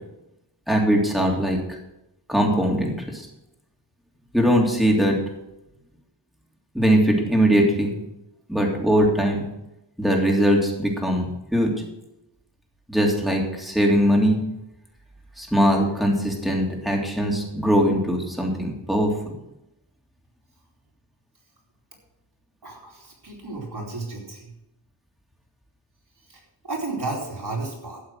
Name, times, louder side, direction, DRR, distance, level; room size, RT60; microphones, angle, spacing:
voice 1, 0.7-1.6 2.3-3.3 4.3-5.2 6.7-8.0 8.5-9.4 10.0-11.7 12.9-14.4 15.4-19.3, equal, ahead, -1 dB, 3.2 m, -21 dB
voice 2, 22.6-24.5 26.3-28.0, right 3 dB, 60° right, -3 dB, 4.6 m, -33 dB
13.0 x 7.7 x 6.3 m, 0.88 s
wide cardioid pair, 70°, 44 cm